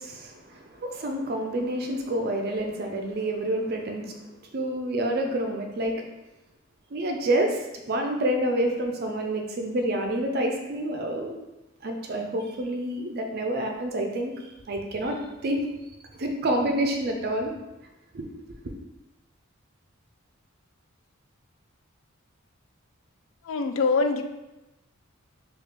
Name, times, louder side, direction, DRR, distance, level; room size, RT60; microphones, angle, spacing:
voice 1, 0.0-4.2 4.5-6.0 6.9-7.6 7.9-11.4 11.8-14.3 14.7-15.2 15.4-15.6 16.1-17.5 18.1-18.3, right 1 dB, 50° right, 3 dB, 0.4 m, -28 dB
voice 2, 23.5-24.2, left 4 dB, 65° left, 7 dB, 0.3 m, -23 dB
3.2 x 2.4 x 3.3 m, 1.0 s
head